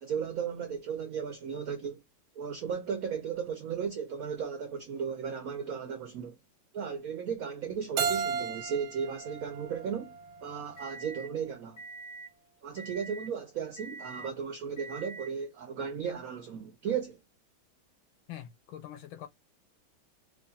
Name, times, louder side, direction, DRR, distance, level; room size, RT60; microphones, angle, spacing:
voice 1, 0.0-2.0 2.4-6.4 6.7-10.2 10.4-11.8 12.6-17.2, right 7 dB, 75° right, 0.8 m, -35 dB
Keyboard (musical), 8.0-10.8, right 7 dB, 90° right, 1.5 m, -35 dB
sound 1, 9.2-11.3 11.8-12.3 12.8-13.3 13.8-14.3 14.8-15.3, right 3 dB, 55° left, 0.4 m, -46 dB
voice 2, 18.3-19.3, left 11 dB, 80° left, 1.4 m, -44 dB
4.7 x 2.4 x 2.7 m
omnidirectional pair, 2.2 m